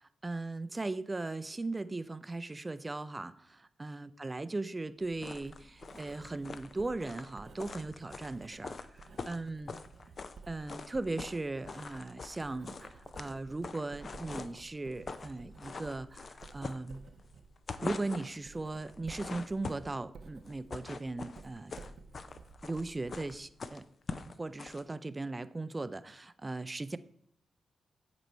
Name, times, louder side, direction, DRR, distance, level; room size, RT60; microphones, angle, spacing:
voice 1, 0.2-8.9 9.2-9.8 10.5-17.1 17.8-21.7 22.6-23.8 24.4-27.0, right 2 dB, 30° right, 13 dB, 0.4 m, -38 dB
Writing, 5.0-23.8, right 4 dB, 65° right, 0.6 m, -54 dB
sound 1, 5.2-10.4 10.7-11.4 11.7-14.6 14.9-15.3 15.6-17.3 17.6-18.4 18.9-20.0 20.5-24.8, left 4 dB, 55° left, 0.4 m, -43 dB
8.0 x 3.1 x 4.4 m, 0.68 s
supercardioid pair, 45°, 0 cm